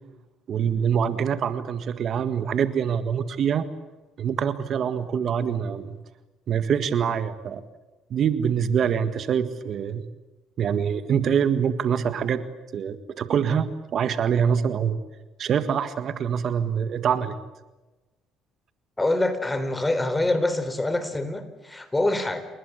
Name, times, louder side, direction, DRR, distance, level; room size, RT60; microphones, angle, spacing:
voice 1, 0.5-3.7 4.2-6.0 6.5-7.6 8.1-10.0 10.6-12.4 12.7-15.0 15.4-17.3, right 7 dB, 55° right, 11 dB, 1.7 m, -25 dB
voice 2, 19.0-22.4, left 2 dB, 15° left, 11 dB, 4.0 m, -25 dB
29.5 x 20.0 x 8.4 m, 1.1 s
supercardioid pair, 85°, 0 cm